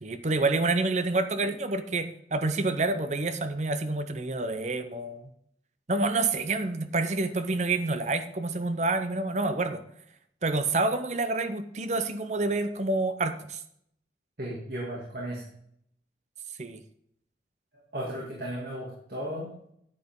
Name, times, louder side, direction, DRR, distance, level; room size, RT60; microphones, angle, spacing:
voice 1, 0.0-5.3 5.9-9.8 10.4-13.6 16.6-16.8, right 3 dB, 40° right, 10 dB, 0.7 m, -28 dB
voice 2, 14.4-15.4 17.7-19.5, equal, 55° right, -4 dB, 2.4 m, -35 dB
9.5 x 9.3 x 3.7 m, 0.70 s
head